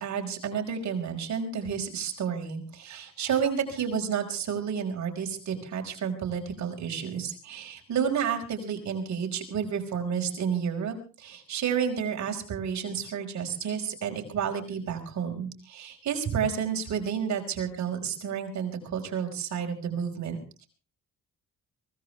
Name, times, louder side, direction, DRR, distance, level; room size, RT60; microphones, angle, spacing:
voice 1, 0.0-20.7, right 7 dB, 65° right, 2 dB, 5.2 m, -31 dB
23.5 x 17.5 x 3.4 m, 0.36 s
cardioid pair, 90°, 30 cm